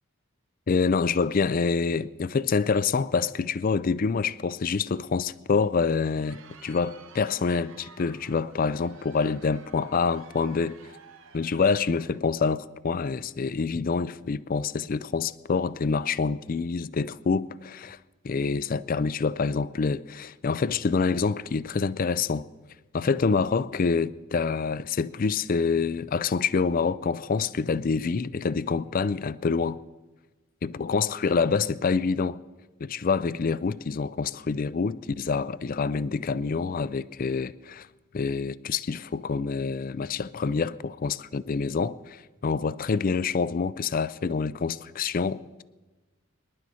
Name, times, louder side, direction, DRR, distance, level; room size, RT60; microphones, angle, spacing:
voice 1, 0.7-10.8 11.3-18.0 18.2-22.4 22.9-29.8 30.6-32.4 32.8-37.9 38.1-45.6, left 5 dB, 40° left, 0.4 m, -26 dB
Crowd, 5.7-12.3, right 5 dB, 70° right, 1.1 m, -52 dB
25.5 x 11.5 x 4.3 m
head